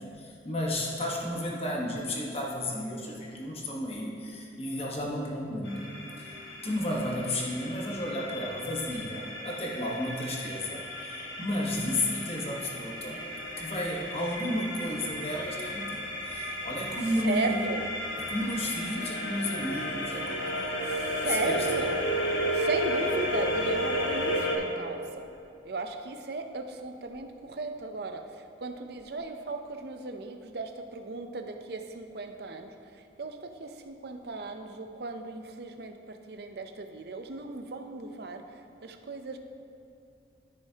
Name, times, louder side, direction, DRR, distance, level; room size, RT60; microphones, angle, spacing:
voice 1, 0.0-13.3 13.6-17.7 18.1-21.9, left 1 dB, 30° left, -2 dB, 1.2 m, -33 dB
sound 1, 5.7-24.6, equal, 80° left, 1.4 m, -33 dB
voice 2, 17.2-17.9 20.9-22.0 22.5-25.3 25.7-32.7 33.2-38.4 38.8-39.4, right 3 dB, 55° right, 6 dB, 0.6 m, -36 dB
13.5 x 6.4 x 2.8 m, 2.7 s
head